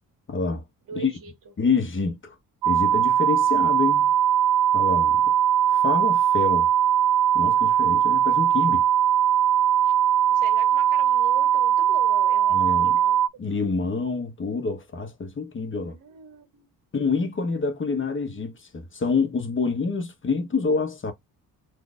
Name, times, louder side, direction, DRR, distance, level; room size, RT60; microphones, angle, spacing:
voice 1, 0.3-0.6 0.9-1.1 1.6-2.4 2.6-4.1 4.7-5.3 5.7-6.7 7.3-8.8 12.5-13.0 13.4-16.0 16.9-21.1, left 4 dB, 35° left, 1.1 m, -27 dB
voice 2, 0.9-1.3 9.8-9.9 10.3-13.2 15.8-16.7, right 7 dB, 65° right, 1.5 m, -40 dB
sound 1, 2.6-13.3, right 10 dB, 80° right, 0.6 m, -20 dB
3.9 x 2.9 x 2.4 m
cardioid pair, 90°, 36 cm